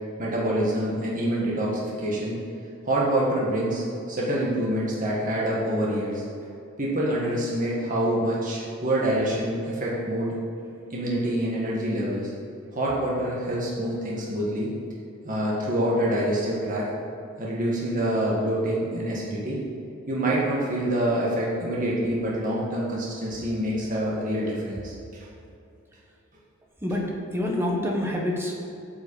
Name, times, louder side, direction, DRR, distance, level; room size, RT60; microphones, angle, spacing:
voice 1, 0.2-2.4 2.8-6.2 6.8-10.3 10.9-12.3 12.7-14.7 15.2-16.9 17.4-19.6 20.1-24.9, right 1 dB, 40° right, -5 dB, 1.7 m, -26 dB
voice 2, 26.8-28.6, left 1 dB, 10° right, -1 dB, 1.5 m, -27 dB
8.6 x 6.1 x 7.1 m, 2.6 s
head